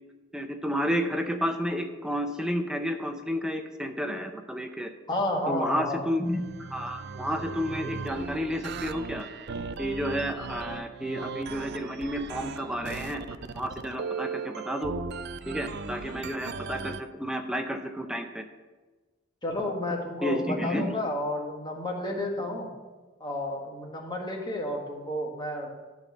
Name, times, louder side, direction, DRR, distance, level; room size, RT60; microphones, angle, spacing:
voice 1, 0.3-4.9 5.5-9.3 9.8-15.0 15.5-18.4 20.2-20.9, equal, 5° right, 5 dB, 0.5 m, -31 dB
voice 2, 5.1-6.0 19.4-22.7 23.2-25.7, left 1 dB, 20° left, 0 dB, 1.5 m, -31 dB
sound 1, 6.2-17.0, right 5 dB, 55° right, 0.5 m, -37 dB
12.0 x 4.2 x 7.1 m, 1.3 s
head